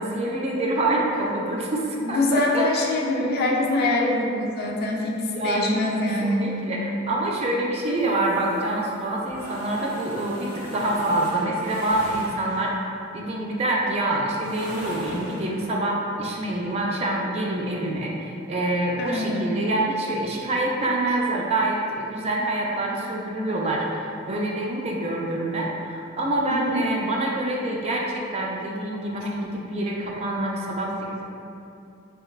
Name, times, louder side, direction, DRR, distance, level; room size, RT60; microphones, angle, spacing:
voice 1, 0.0-2.6 3.1-3.3 5.3-5.7 6.0-12.8 13.1-31.2, right 1 dB, 30° right, -2 dB, 0.3 m, -26 dB
voice 2, 2.0-6.5 19.0-19.5 26.5-26.8, left 2 dB, 50° left, -1 dB, 0.4 m, -24 dB
sound 1, 8.0-12.8 14.3-15.5, equal, 70° right, 0.9 m, -39 dB
3.8 x 2.2 x 2.3 m, 2.6 s
head